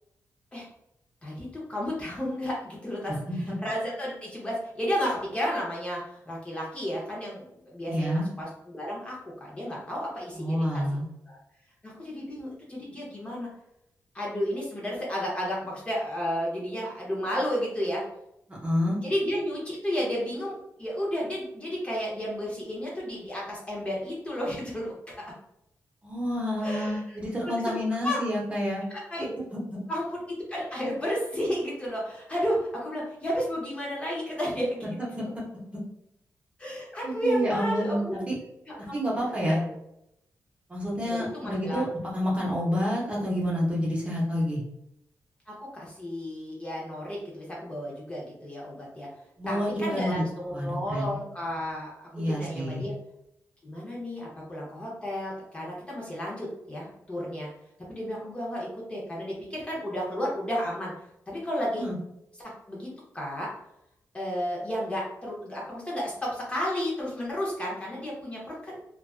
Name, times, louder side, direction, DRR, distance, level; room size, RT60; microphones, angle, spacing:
voice 1, 1.2-10.8 11.3-11.4 11.8-13.5 14.1-18.0 19.0-24.9 25.2-25.3 26.6-27.2 27.4-27.8 28.0-28.2 28.9-29.2 29.9-34.9 36.6-38.2 38.7-39.1 39.4-39.8 41.0-41.8 45.5-49.1 49.5-52.9 53.6-57.5 57.9-60.9 61.3-61.8 62.4-62.9 63.1-63.5 64.1-68.8, equal, 20° left, -4 dB, 0.6 m, -32 dB
voice 2, 3.1-3.5 7.9-8.3 10.4-11.1 18.5-19.0 26.0-28.8 29.5-29.8 34.8-35.3 37.0-38.3 38.9-39.6 40.7-41.9 42.1-44.6 49.4-50.2 50.5-51.2 52.1-52.9 61.8-62.0, equal, 20° right, -5 dB, 0.8 m, -29 dB
2.4 x 2.3 x 2.3 m, 0.79 s
wide cardioid pair, 135°, 6 cm